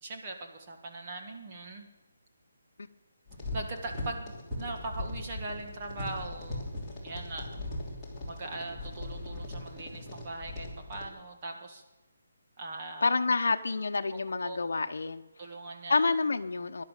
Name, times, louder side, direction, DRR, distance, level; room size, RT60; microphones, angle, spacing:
voice 1, 0.0-1.9 3.5-6.7 7.0-7.8 8.2-11.8 12.6-13.1 14.3-14.6 15.4-16.1, right 2 dB, 25° right, 2 dB, 1.8 m, -40 dB
sound 1, 3.3-11.1, left 1 dB, 5° left, 3.1 m, -39 dB
voice 2, 13.0-15.2 15.9-16.8, left 3 dB, 70° left, 6 dB, 0.9 m, -28 dB
19.5 x 11.0 x 6.6 m, 1.1 s
hypercardioid pair, 175°, 0 cm